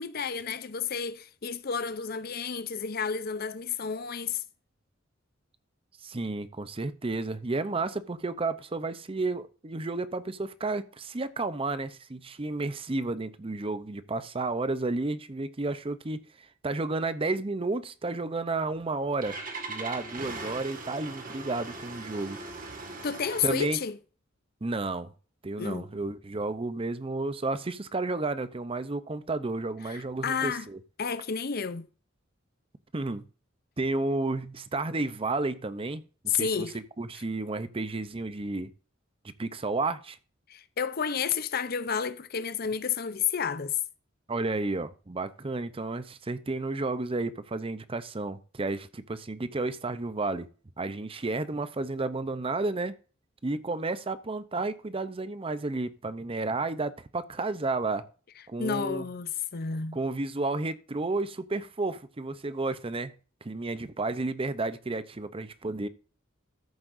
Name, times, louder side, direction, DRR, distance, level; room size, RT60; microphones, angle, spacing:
voice 1, 0.0-4.4 23.0-24.0 25.6-25.9 29.9-30.7 31.0-31.9 36.3-36.8 40.5-43.8 58.6-60.0, left 6 dB, 50° left, 0.6 m, -31 dB
voice 2, 6.0-19.4 19.7-22.4 23.4-23.8 24.6-25.1 25.4-30.8 32.9-33.2 33.8-38.7 39.4-40.2 44.3-50.5 50.8-53.0 53.4-58.0 58.5-59.1 59.9-63.1 63.4-65.9, right 3 dB, 30° right, 0.6 m, -32 dB
Engine starting, 18.7-23.9, right 3 dB, 45° right, 1.8 m, -40 dB
14.0 x 7.5 x 2.6 m
head